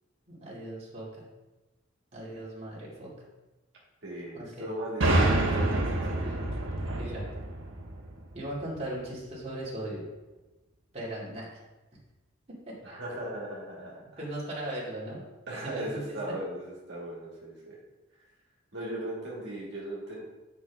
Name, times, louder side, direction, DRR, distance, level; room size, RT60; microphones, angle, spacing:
voice 1, 0.3-1.3 2.1-3.1 4.3-4.7 6.2-6.4 7.0-7.2 8.3-10.0 10.9-11.5 12.7-12.8 14.2-15.2 15.6-16.4, right 1 dB, 35° right, -7 dB, 2.4 m, -38 dB
voice 2, 4.0-6.3 12.8-14.0 15.5-17.7 18.7-20.2, right 1 dB, 60° right, -5 dB, 2.1 m, -38 dB
sound 1, 5.0-8.7, right 1 dB, 80° right, 1.2 m, -27 dB
9.3 x 5.8 x 3.5 m, 1.1 s
head